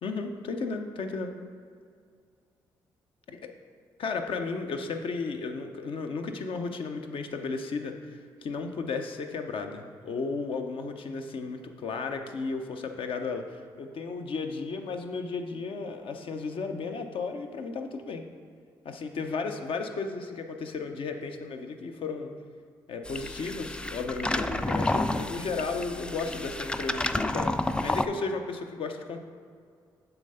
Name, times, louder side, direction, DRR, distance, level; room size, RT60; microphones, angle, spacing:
voice 1, 0.0-1.3 3.3-3.4 4.0-7.9 8.4-13.4 13.8-18.2 18.8-22.3 22.9-29.2, left 4 dB, 60° left, 5 dB, 0.6 m, -34 dB
coffee machine, 23.1-28.1, left 2 dB, 10° left, 0.3 m, -30 dB
7.0 x 3.4 x 5.5 m, 2.2 s
hypercardioid pair, 50°, 10 cm